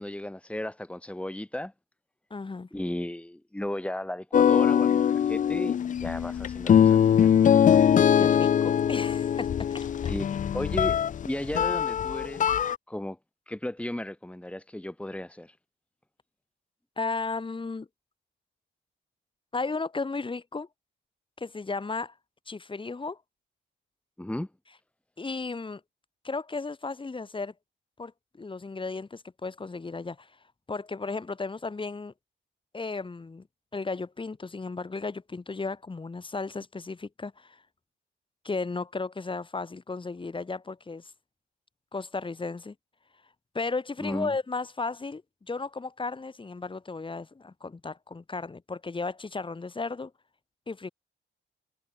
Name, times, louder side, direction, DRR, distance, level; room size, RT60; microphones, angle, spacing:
voice 1, 0.0-1.7 2.7-7.3 10.1-12.5 12.9-13.2 13.5-15.5 24.2-24.5 44.0-44.3, left 1 dB, 5° left, 3.7 m, -35 dB
voice 2, 2.3-2.7 8.2-9.5 9.7-9.9 17.0-17.9 19.5-20.7 21.4-22.1 22.5-23.2 25.2-25.8 26.2-27.5 28.0-28.1 28.4-30.3 30.7-32.1 32.7-33.5 33.7-37.6 38.4-41.0 41.9-42.7 43.5-50.1 50.7-50.9, left 3 dB, 25° left, 4.3 m, -34 dB
sound 1, 4.3-12.8, left 9 dB, 40° left, 0.5 m, -22 dB
cardioid pair, 90°, 20 cm